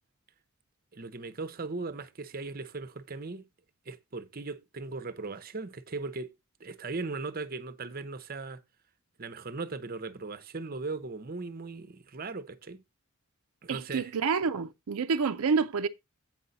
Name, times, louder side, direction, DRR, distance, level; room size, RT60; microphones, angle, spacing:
voice 1, 0.9-3.5 3.9-6.3 6.6-8.6 9.2-12.8 13.6-14.1, right 3 dB, 45° right, 0.7 m, -38 dB
voice 2, 13.7-15.9, right 5 dB, 80° right, 0.5 m, -28 dB
8.6 x 5.4 x 4.0 m
head